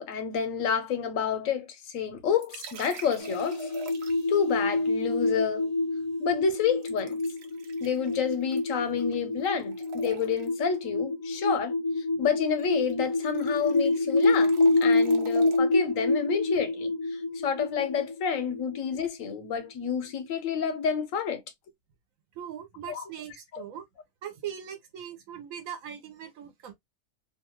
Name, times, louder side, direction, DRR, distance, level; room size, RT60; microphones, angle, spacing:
voice 1, 0.0-3.7 4.3-5.7 6.2-7.2 7.8-11.7 12.2-14.5 14.8-21.4 22.9-23.1 23.5-23.6, left 7 dB, 85° left, 1.1 m, -29 dB
sound 1, 2.4-4.4 6.8-9.2 9.4-10.6 12.4-12.6 12.9-15.6, right 4 dB, 60° right, 0.8 m, -45 dB
sound 2, 3.2-19.5, left 2 dB, 40° left, 0.6 m, -27 dB
voice 2, 22.3-23.8 24.2-26.7, right 9 dB, 85° right, 1.1 m, -40 dB
2.8 x 2.3 x 2.8 m
omnidirectional pair, 1.4 m